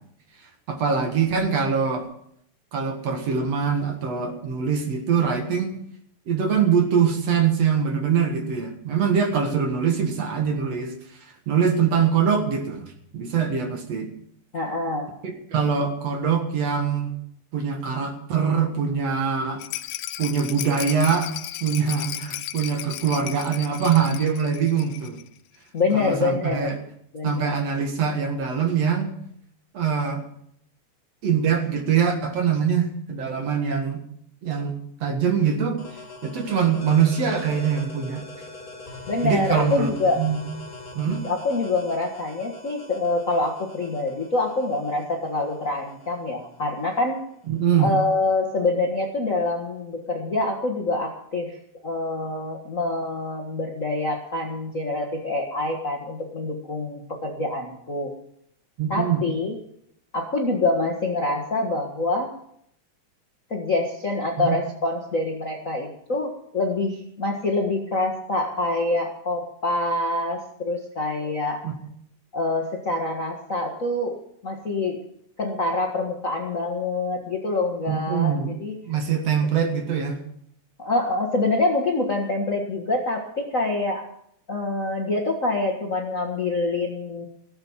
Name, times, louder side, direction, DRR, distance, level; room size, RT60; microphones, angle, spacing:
voice 1, 0.7-2.1 2.7-5.8 6.3-11.2 11.5-14.1 15.2-17.1 17.5-19.6 20.2-21.3 21.6-25.2 25.9-26.8 27.2-29.2 29.7-30.2 31.2-34.0 34.4-34.7 35.0-38.3 39.2-40.4 41.0-41.2 47.5-47.9 58.8-59.2 64.4-64.6 71.6-71.7 77.9-78.5 78.9-80.2, right 6 dB, 55° right, 5 dB, 2.6 m, -23 dB
voice 2, 14.5-15.1 25.7-26.8 27.1-27.5 39.1-40.2 41.1-47.2 47.8-51.6 51.8-58.1 58.9-59.5 60.1-62.3 63.5-71.6 72.3-74.2 74.4-75.0 75.4-78.7 80.8-84.1 84.5-87.3, left 2 dB, 40° left, 0 dB, 1.1 m, -26 dB
Rattle, 19.6-25.3 25.5-25.6 25.9-26.0, left 14 dB, 90° left, 2.3 m, -35 dB
sound 1, 35.8-47.2, left 2 dB, 20° left, 2.0 m, -42 dB
17.5 x 7.9 x 7.3 m, 0.71 s
omnidirectional pair, 3.7 m